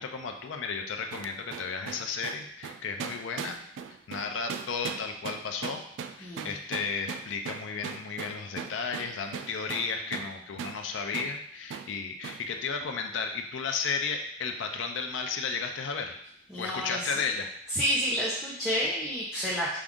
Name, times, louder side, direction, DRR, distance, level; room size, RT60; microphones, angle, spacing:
voice 1, 0.0-3.6 4.1-5.8 6.2-16.2 16.6-17.5, left 5 dB, 80° left, 4 dB, 0.4 m, -33 dB
sound 1, 1.1-10.3 10.6-10.8 11.1-11.3 11.7-11.9 12.2-12.4, right 6 dB, 75° right, 0.3 m, -38 dB
voice 2, 6.2-6.6 16.5-17.1 17.7-19.8, equal, 5° right, -8 dB, 0.7 m, -30 dB
4.7 x 2.5 x 3.6 m, 0.69 s
head